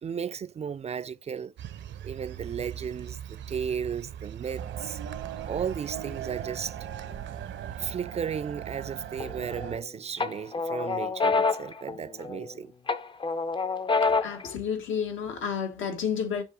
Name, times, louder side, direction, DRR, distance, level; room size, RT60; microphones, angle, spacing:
voice 1, 0.0-1.5 2.0-5.0 5.5-6.8 7.7-12.7, right 7 dB, 35° right, 0.4 m, -34 dB
sound 1, 1.6-7.9, right 9 dB, 65° right, 0.6 m, -42 dB
sound 2, 4.6-9.8, right 10 dB, 85° right, 1.0 m, -39 dB
sound 3, 9.2-9.8 10.2-12.5 12.9-14.5, left 4 dB, 25° left, 0.5 m, -27 dB
voice 2, 13.9-16.4, left 7 dB, 80° left, 1.4 m, -31 dB
6.8 x 2.8 x 5.1 m
cardioid pair, 90°, 20 cm